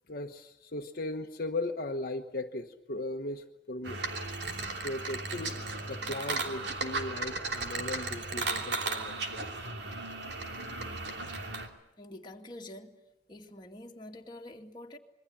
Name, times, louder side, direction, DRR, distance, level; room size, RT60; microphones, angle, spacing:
voice 1, 0.1-4.0 4.8-5.6 5.9-9.7, left 2 dB, 55° left, 3 dB, 1.2 m, -37 dB
sound 1, 3.8-11.7, right 3 dB, 70° right, 3.1 m, -35 dB
voice 2, 12.0-13.0 13.3-15.0, left 1 dB, 25° left, 1 dB, 2.3 m, -46 dB
26.0 x 22.5 x 8.8 m, 0.83 s
head